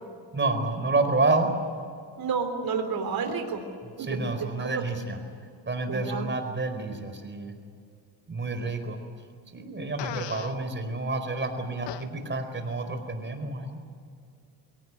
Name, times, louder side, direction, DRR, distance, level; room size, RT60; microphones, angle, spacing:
voice 1, 0.3-1.5 4.0-5.2 5.7-7.5 8.3-9.0 9.5-13.8, right 3 dB, 25° right, 7 dB, 4.5 m, -29 dB
voice 2, 2.2-3.7 4.0-4.8 5.9-6.3, right 5 dB, 50° right, 5 dB, 3.8 m, -31 dB
Fart, 10.0-10.6 11.9-12.0, left 13 dB, 70° left, 1.1 m, -36 dB
23.0 x 18.0 x 9.7 m, 2.3 s
cardioid pair, 95°, 45 cm